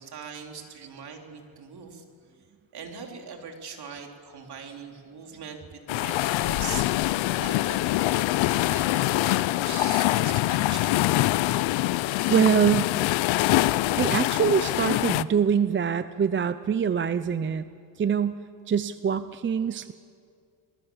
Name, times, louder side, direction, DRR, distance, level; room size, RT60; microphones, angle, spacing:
voice 1, 0.0-2.0 2.7-8.0 8.4-11.1, right 6 dB, 55° right, 2 dB, 3.6 m, -41 dB
sound 1, 5.9-15.2, left 17 dB, 85° left, 0.7 m, -24 dB
voice 2, 12.3-13.0 14.0-17.7 18.0-19.9, right 7 dB, 25° right, 12 dB, 0.6 m, -24 dB
29.0 x 20.0 x 7.2 m, 2.2 s
cardioid pair, 110°, 45 cm